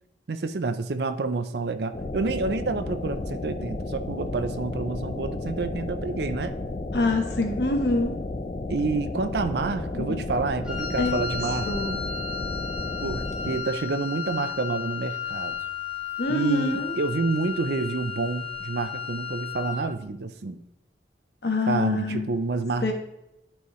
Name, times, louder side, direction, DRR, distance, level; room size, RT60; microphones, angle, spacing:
voice 1, 0.3-6.5 8.7-12.0 13.0-15.6 16.3-20.6 21.7-22.9, right 3 dB, 65° right, 10 dB, 0.5 m, -28 dB
sound 1, 1.9-13.6, left 2 dB, 40° left, 0.6 m, -33 dB
voice 2, 6.9-8.2 9.9-10.3 11.0-11.2 11.6-12.0 16.2-17.0 21.4-22.2 22.8-22.9, left 2 dB, 65° left, 4 dB, 1.2 m, -26 dB
Wind instrument woodwind instrument, 10.6-19.9, left 7 dB, 5° right, 1.1 m, -34 dB
11.5 x 4.7 x 3.1 m, 0.87 s
head